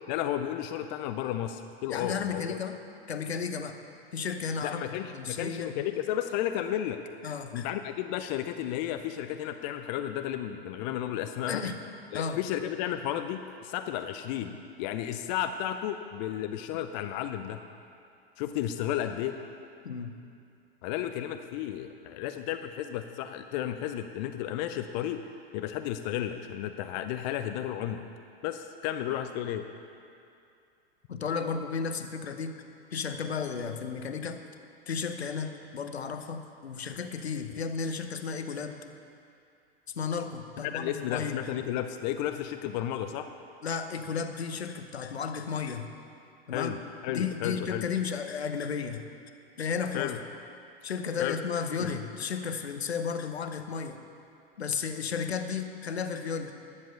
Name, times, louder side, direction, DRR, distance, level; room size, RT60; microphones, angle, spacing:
voice 1, 0.1-2.6 4.6-7.0 7.5-11.6 12.1-17.6 18.4-19.4 20.8-25.2 25.5-28.0 28.4-29.6 40.6-43.3 46.5-47.9 49.9-50.2 51.2-51.4 51.8-51.9, left 11 dB, 45° left, 8 dB, 0.6 m, -33 dB
voice 2, 1.9-2.8 3.1-3.8 4.1-5.7 7.2-7.7 11.5-11.8 12.1-12.4 19.8-20.1 31.1-32.6 32.9-34.4 34.9-38.8 39.9-41.4 43.6-45.9 46.5-46.8 47.1-49.0 49.6-50.1 50.8-54.0 54.6-56.5, left 6 dB, 85° left, 7 dB, 0.8 m, -33 dB
10.5 x 7.4 x 6.6 m, 2.5 s
figure-of-eight pair, 95°, 31 cm